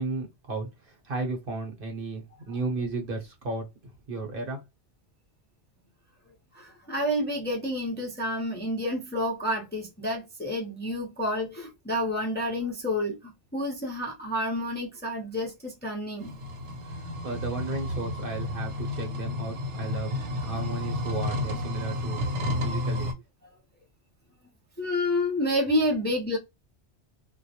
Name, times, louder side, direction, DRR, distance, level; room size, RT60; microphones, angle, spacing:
voice 1, 0.0-3.7 4.1-4.6 16.8-17.0 17.2-23.1, right 2 dB, 55° right, 0.9 m, -34 dB
voice 2, 6.5-16.3 24.8-26.4, left 1 dB, 15° left, 0.3 m, -29 dB
sound 1, 16.2-23.1, left 1 dB, 80° right, 1.0 m, -31 dB
2.2 x 2.0 x 2.7 m
omnidirectional pair, 1.2 m